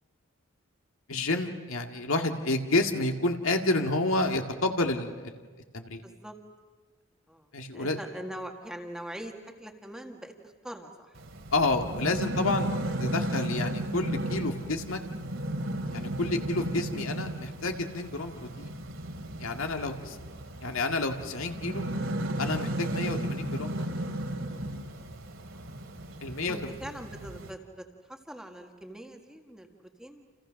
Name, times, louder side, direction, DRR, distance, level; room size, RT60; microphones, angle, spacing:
voice 1, 1.1-5.3 5.7-6.0 7.5-8.0 11.5-12.7 13.0-15.0 15.9-18.7 19.4-20.2 20.6-21.8 22.4-23.9 26.2-26.7, left 2 dB, 75° left, 4 dB, 2.0 m, -29 dB
voice 2, 6.0-6.4 7.3-11.2 19.9-20.3 25.5-25.6 26.5-30.3, right 1 dB, 5° right, 3 dB, 1.8 m, -43 dB
sound 1, 11.2-27.5, right 1 dB, 70° right, 2.9 m, -34 dB
29.5 x 28.5 x 6.4 m, 1.4 s
head